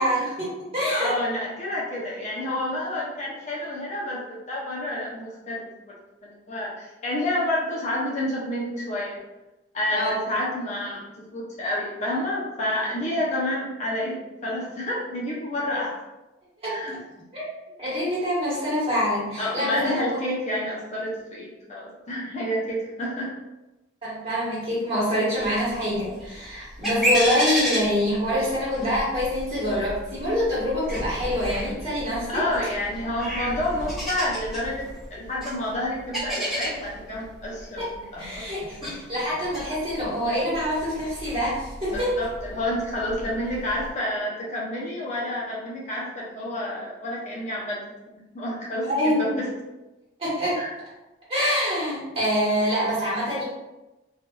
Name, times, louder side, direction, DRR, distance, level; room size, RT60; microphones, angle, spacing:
voice 1, 0.0-1.2 10.0-10.3 16.6-16.7 17.3-17.5 17.8-20.3 24.0-32.4 37.8-37.9 38.2-42.2 48.9-49.3 50.2-50.6 51.3-53.4, equal, 35° right, -8 dB, 1.3 m, -25 dB
voice 2, 0.9-5.9 6.2-9.2 9.7-14.2 14.4-15.9 16.7-17.0 19.4-23.3 32.3-37.8 38.1-38.5 38.8-39.0 41.9-47.8 48.1-49.5 50.6-50.7, left 1 dB, 40° left, -4 dB, 0.6 m, -29 dB
sound 1, 25.4-43.9, equal, ahead, 1.2 m, -33 dB
3.4 x 2.6 x 2.3 m, 1.0 s
head